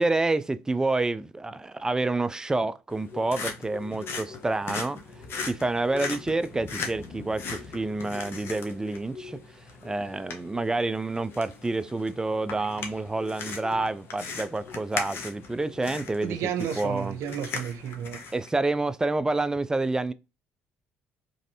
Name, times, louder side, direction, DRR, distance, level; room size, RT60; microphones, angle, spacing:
voice 1, 0.0-5.0 5.4-9.4 9.8-17.2 18.3-20.1, right 2 dB, 15° right, 0.3 m, -28 dB
sound 1, 2.9-18.5, left 4 dB, 55° left, 0.9 m, -39 dB
voice 2, 16.2-18.2, right 9 dB, 75° right, 0.5 m, -32 dB
3.1 x 2.6 x 2.7 m
supercardioid pair, 65°, 5 cm